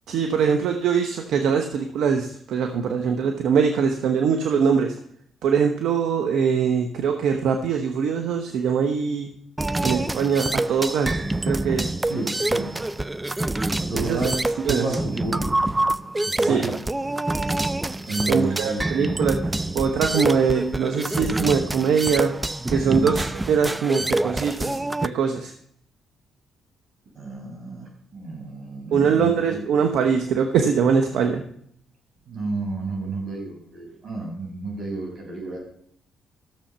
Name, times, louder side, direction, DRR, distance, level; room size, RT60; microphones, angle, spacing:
voice 1, 0.1-5.0 5.4-9.3 9.8-11.9 13.9-14.2 14.6-14.9 16.4-16.8 18.3-19.4 19.7-25.5 28.9-31.4, right 6 dB, 80° right, 5 dB, 1.1 m, -22 dB
sound 1, 9.6-25.1, right 2 dB, 15° right, 0.4 m, -26 dB
voice 2, 12.1-12.7 13.8-14.4 14.6-15.6 16.4-16.7 18.1-19.0 22.9-23.2 27.2-29.6 32.3-35.6, right 2 dB, 60° right, 1 dB, 5.6 m, -31 dB
13.5 x 7.2 x 5.6 m, 0.65 s
cardioid pair, 90°, 0 cm